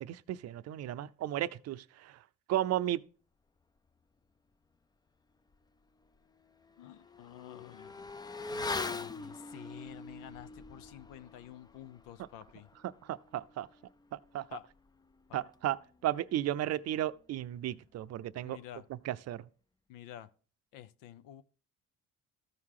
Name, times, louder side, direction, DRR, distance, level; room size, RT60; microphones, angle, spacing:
voice 1, 0.0-2.2 2.5-3.0 13.1-13.7 14.1-14.4 15.3-18.6 18.9-19.4, right 13 dB, 55° right, 0.5 m, -34 dB
Motorcycle / Accelerating revving vroom, 5.5-5.6 6.0-16.0 16.3-16.4, left 3 dB, 15° left, 0.4 m, -44 dB
voice 2, 6.8-8.1 8.5-12.7 14.5-14.7 15.3-15.5 18.4-18.8 19.9-20.3 20.7-21.4, left 12 dB, 90° left, 0.7 m, -50 dB
14.0 x 4.8 x 3.7 m
cardioid pair, 110°, 32 cm